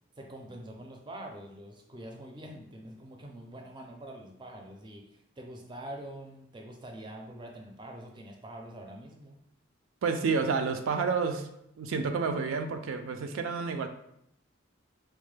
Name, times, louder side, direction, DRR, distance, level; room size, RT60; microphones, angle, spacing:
voice 1, 0.2-9.4, right 1 dB, 25° right, 1 dB, 0.4 m, -45 dB
voice 2, 10.0-11.5 11.8-13.9, right 5 dB, 85° right, 6 dB, 0.4 m, -29 dB
4.5 x 2.1 x 3.2 m, 0.77 s
head